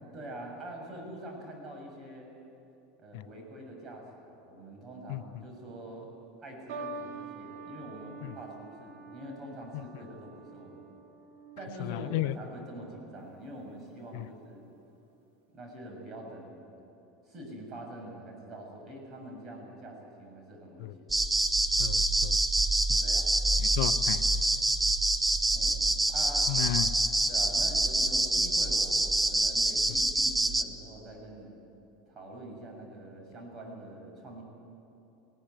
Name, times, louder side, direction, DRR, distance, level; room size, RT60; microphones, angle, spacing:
voice 1, 0.1-2.3 3.0-6.1 6.4-10.9 11.6-14.6 15.5-16.7 17.3-21.1 23.0-23.3 25.5-26.5 27.3-31.6 32.1-34.4, right 1 dB, 35° right, 1 dB, 7.0 m, -45 dB
sound 1, 6.7-13.2 14.1-14.5, right 3 dB, 60° right, 2.3 m, -46 dB
voice 2, 11.9-12.3 14.1-14.2 20.8-20.9 21.8-22.4 23.8-24.2 26.5-26.9, left 16 dB, 65° left, 14 dB, 0.7 m, -33 dB
sound 2, 21.1-30.6, right 2 dB, 10° right, 1.0 m, -26 dB
20.0 x 17.5 x 9.6 m, 2.8 s
hypercardioid pair, 80°, 0 cm